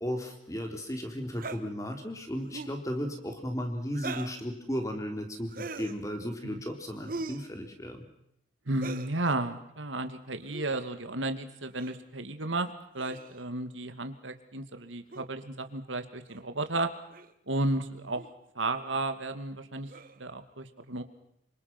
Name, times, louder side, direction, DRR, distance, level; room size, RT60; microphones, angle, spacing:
voice 1, 0.0-8.0, equal, 15° left, 4 dB, 3.8 m, -35 dB
sound 1, 1.3-1.6 2.4-2.8 3.9-4.4 5.5-6.0 7.1-7.5 8.7-9.1 10.4-10.7 11.8-12.0 13.0-13.4 15.1-15.2 16.3-16.4 17.1-17.3 18.1-18.3 19.9-20.3, right 3 dB, 45° right, 1.5 m, -40 dB
voice 2, 8.7-16.9 17.5-18.3 18.5-19.9 20.2-21.0, right 2 dB, 85° right, 8 dB, 2.4 m, -33 dB
28.5 x 25.0 x 6.1 m, 0.74 s
head